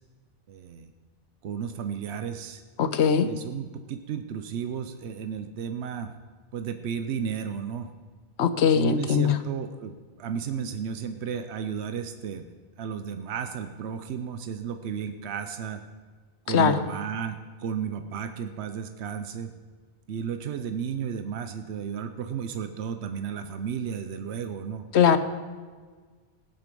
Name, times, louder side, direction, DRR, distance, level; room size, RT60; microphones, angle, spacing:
voice 1, 0.5-0.9 1.4-2.6 3.2-6.1 6.5-7.9 8.7-12.5 12.8-15.8 16.5-19.5 20.1-24.9, right 7 dB, 80° right, 8 dB, 1.0 m, -33 dB
voice 2, 2.8-3.3 8.4-9.4 16.5-16.8 24.9-25.2, left 7 dB, 80° left, 11 dB, 1.1 m, -21 dB
18.0 x 7.9 x 5.3 m, 1.5 s
omnidirectional pair, 1.1 m